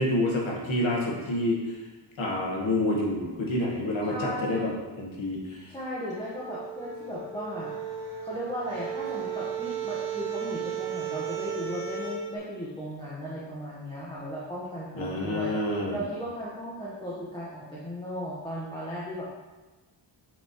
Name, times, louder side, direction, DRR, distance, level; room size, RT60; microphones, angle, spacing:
voice 1, 0.0-1.8 2.2-4.7 5.0-5.7 15.0-16.0, left 1 dB, 75° left, -2 dB, 1.8 m, -28 dB
voice 2, 4.0-4.9 5.7-7.7 8.2-19.3, equal, 10° left, -7 dB, 1.3 m, -36 dB
sound 1, 6.1-12.2, right 8 dB, 45° right, 1.8 m, -35 dB
8.0 x 5.7 x 3.1 m, 1.2 s
wide cardioid pair, 125°, 47 cm